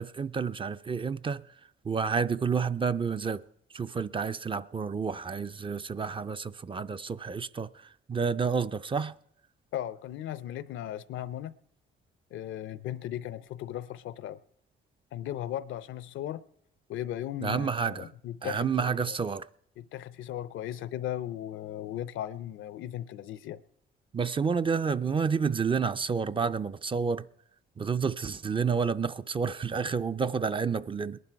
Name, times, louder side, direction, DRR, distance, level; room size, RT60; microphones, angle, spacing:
voice 1, 0.0-1.5 1.8-3.4 3.7-9.1 17.4-18.1 18.4-19.5 24.1-27.3 27.8-31.2, right 5 dB, 25° right, 0.4 m, -30 dB
voice 2, 9.7-11.5 12.3-14.4 15.1-16.4 16.9-19.2 19.8-23.6, left 12 dB, 80° left, 0.6 m, -37 dB
20.5 x 11.0 x 4.6 m
cardioid pair, 90°, 20 cm